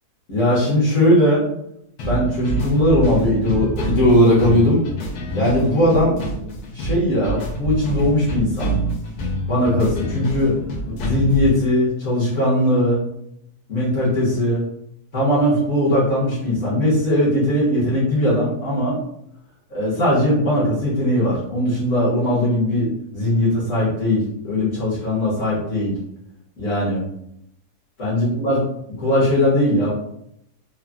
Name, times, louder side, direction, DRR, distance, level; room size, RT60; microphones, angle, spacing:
voice 1, 0.3-1.4 2.1-4.8 5.3-6.2 6.7-8.8 9.5-10.6 11.0-13.0 13.7-14.6 15.1-19.0 19.7-26.0 26.6-27.1 28.0-28.6 29.0-29.9, left 1 dB, 55° left, -7 dB, 1.3 m, -19 dB
sound 1, 2.0-11.6, right 1 dB, 80° left, 1.2 m, -26 dB
3.7 x 2.0 x 2.2 m, 0.76 s
omnidirectional pair, 1.7 m